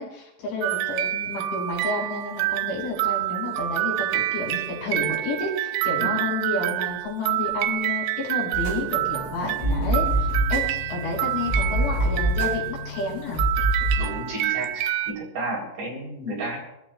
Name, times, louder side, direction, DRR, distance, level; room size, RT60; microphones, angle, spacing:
voice 1, 0.0-10.6 10.9-13.4, left 3 dB, 85° left, -3 dB, 6.6 m, -30 dB
sound 1, 0.6-13.1 13.4-15.1, right 15 dB, 90° right, 2.2 m, -27 dB
sound 2, 8.5-14.1, equal, 55° left, 9.1 m, -26 dB
voice 2, 14.0-16.6, right 1 dB, 45° right, -3 dB, 4.9 m, -32 dB
26.5 x 14.0 x 2.4 m, 0.88 s
omnidirectional pair, 5.2 m